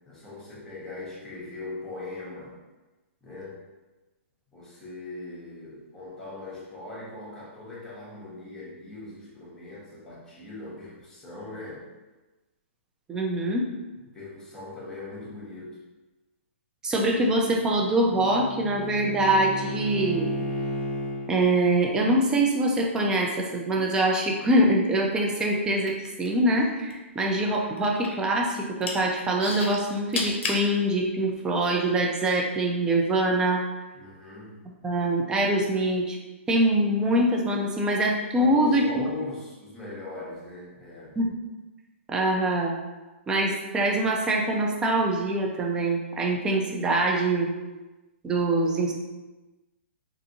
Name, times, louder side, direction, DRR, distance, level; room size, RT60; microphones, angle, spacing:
voice 1, 0.1-2.6 3.2-3.6 4.5-11.8 14.1-15.8 33.9-34.6 38.3-41.2, left 2 dB, 5° left, -8 dB, 0.8 m, -40 dB
voice 2, 13.1-13.7 16.8-20.3 21.3-33.6 34.8-36.2 36.5-39.1 41.2-41.3 42.1-42.8 43.3-47.5 48.2-48.9, right 1 dB, 10° right, 0 dB, 0.3 m, -24 dB
Bowed string instrument, 17.4-21.3, equal, 45° right, 0.8 m, -33 dB
sound 1, 25.8-26.9 27.2-28.3 28.6-29.0 29.4-30.6 31.3-31.4, left 3 dB, 60° left, 0.6 m, -31 dB
2.6 x 2.5 x 2.7 m, 1.1 s
hypercardioid pair, 145°, 7 cm